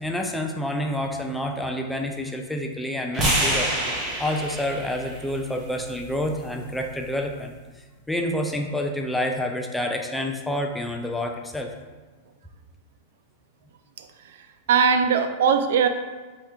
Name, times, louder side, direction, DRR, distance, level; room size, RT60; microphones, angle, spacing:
voice 1, 0.0-7.5 8.1-11.7, left 1 dB, 5° left, 3 dB, 0.3 m, -28 dB
sound 1, 3.1-7.3, right 1 dB, 25° right, 1.1 m, -29 dB
voice 2, 14.0-15.9, right 6 dB, 75° right, 8 dB, 0.4 m, -21 dB
3.6 x 3.2 x 4.3 m, 1.3 s
supercardioid pair, 150°, 0 cm